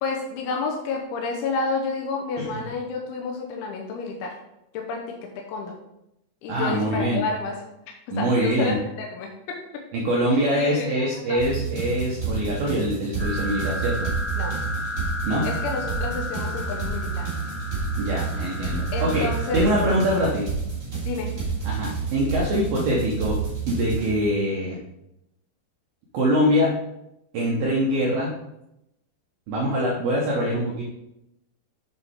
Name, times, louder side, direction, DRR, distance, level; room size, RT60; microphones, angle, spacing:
voice 1, 0.0-4.4 4.7-5.8 6.4-7.7 8.1-9.8 10.3-11.4 14.4-14.5 15.4-17.3 18.9-19.7 21.1-21.4, left 4 dB, 85° left, 1 dB, 2.3 m, -30 dB
voice 2, 6.5-7.2 8.1-8.8 9.9-14.1 15.3-15.5 18.0-20.5 21.6-23.4 23.7-24.8 26.1-26.8 27.3-28.3 29.5-30.8, equal, 75° right, -3 dB, 2.3 m, -24 dB
sound 1, 11.4-24.1, right 5 dB, 25° right, 2.2 m, -29 dB
sound 2, 13.2-20.2, left 1 dB, 25° left, 2.8 m, -34 dB
7.4 x 7.0 x 3.6 m, 0.86 s
omnidirectional pair, 5.6 m